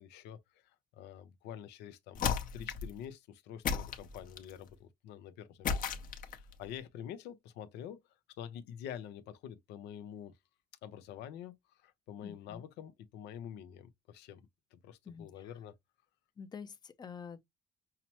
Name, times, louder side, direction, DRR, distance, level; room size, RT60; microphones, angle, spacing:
voice 1, 0.0-8.0 8.4-10.3 10.8-14.4 14.7-15.7, left 9 dB, 85° left, 0.6 m, -47 dB
sound 1, 2.1-2.9 3.6-4.6 5.6-6.5, left 7 dB, 55° left, 0.8 m, -34 dB
voice 2, 12.2-12.6 15.1-15.5 16.4-17.4, left 6 dB, 25° left, 0.5 m, -47 dB
5.7 x 2.0 x 2.8 m
cardioid pair, 110°, 17 cm